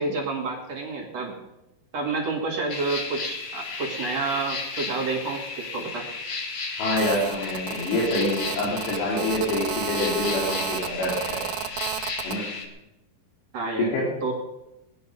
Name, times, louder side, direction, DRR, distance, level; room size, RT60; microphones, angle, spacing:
voice 1, 0.0-1.3 1.9-6.1 13.5-14.3, right 3 dB, 45° right, 0 dB, 2.6 m, -29 dB
sound 1, 2.7-12.6, left 4 dB, 50° left, 2.4 m, -34 dB
voice 2, 6.8-11.5 12.2-12.5 13.8-14.1, left 2 dB, 75° left, -4 dB, 5.0 m, -26 dB
Telephone, 7.0-12.4, right 11 dB, 85° right, 2.1 m, -33 dB
19.5 x 11.5 x 5.4 m, 0.94 s
omnidirectional pair, 4.9 m